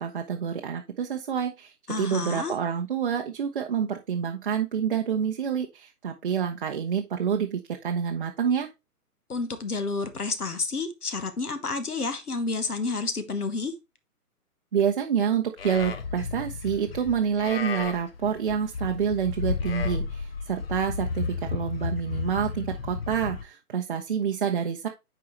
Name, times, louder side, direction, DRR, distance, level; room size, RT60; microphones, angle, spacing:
voice 1, 0.0-8.7 14.7-24.9, right 7 dB, 35° right, 0.7 m, -28 dB
voice 2, 1.9-2.5 9.3-13.7, left 3 dB, 70° left, 1.3 m, -30 dB
Livestock farm animals working animals, 15.6-23.4, left 5 dB, 40° left, 0.7 m, -33 dB
8.9 x 4.7 x 3.1 m
figure-of-eight pair, 130°, 47 cm